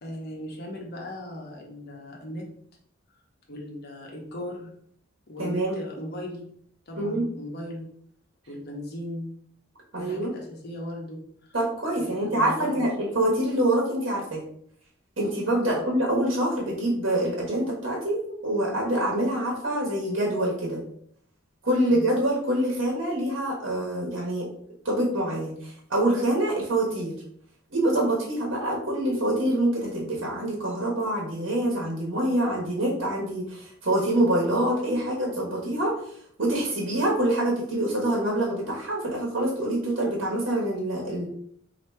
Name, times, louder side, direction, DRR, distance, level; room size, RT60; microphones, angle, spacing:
voice 1, 0.0-2.5 3.5-4.7 5.3-6.5 6.9-7.9 8.5-9.3 9.9-11.5 11.9-12.8 15.6-15.9 21.9-22.1, equal, 55° left, 0 dB, 1.0 m, -37 dB
voice 2, 5.4-5.8 7.0-7.2 9.9-10.3 11.5-14.4 15.2-20.8 21.6-24.5 24.8-27.1 27.7-36.0 36.4-41.3, right 1 dB, 70° right, -2 dB, 1.3 m, -25 dB
2.9 x 2.9 x 4.4 m, 0.65 s
head